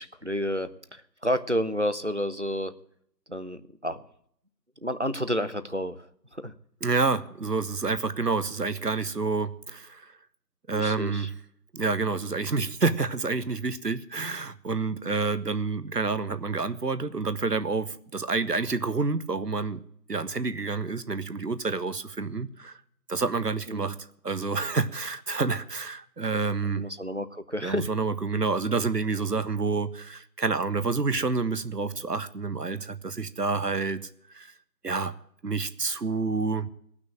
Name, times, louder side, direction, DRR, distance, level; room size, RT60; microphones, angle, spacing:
voice 1, 0.0-2.8 3.3-4.0 4.8-6.5 10.7-11.3 23.7-23.9 26.6-27.9, equal, 45° right, 0.7 m, -30 dB
voice 2, 6.8-10.1 10.7-11.3 11.7-19.8 20.1-22.7 23.1-24.0 24.2-26.9 27.6-34.5 34.8-35.1 35.4-36.7, right 4 dB, 70° right, 1.0 m, -28 dB
17.5 x 6.1 x 8.8 m
figure-of-eight pair, 180°, 49 cm